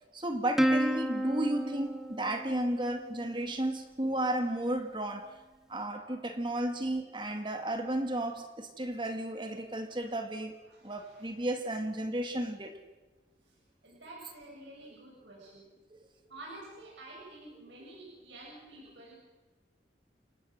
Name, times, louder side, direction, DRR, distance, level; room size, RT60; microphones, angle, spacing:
voice 1, 0.1-5.3 5.7-10.6 10.8-12.8 15.9-16.0, right 1 dB, 25° right, 6 dB, 1.7 m, -33 dB
Plucked string instrument, 0.6-3.3, equal, ahead, 1.5 m, -31 dB
voice 2, 10.7-11.4 13.4-13.6 13.8-15.7 16.3-19.1, right 2 dB, 75° right, -4 dB, 7.5 m, -50 dB
29.5 x 18.0 x 6.5 m, 1.2 s
head